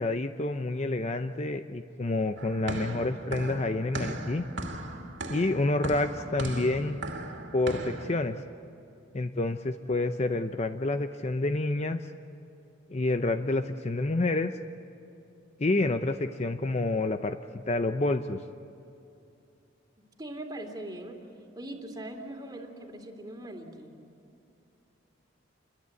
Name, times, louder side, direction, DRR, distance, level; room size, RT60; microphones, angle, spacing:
voice 1, 0.0-4.4 5.3-7.0 7.5-8.4 9.1-12.0 12.9-14.5 15.6-18.4, left 2 dB, 35° left, 9 dB, 0.6 m, -28 dB
sound 1, 2.4-8.2, right 1 dB, 70° right, 2.4 m, -38 dB
voice 2, 20.2-21.2 21.6-23.9, right 1 dB, 20° right, 4 dB, 2.6 m, -40 dB
28.5 x 21.5 x 8.5 m, 2.8 s
head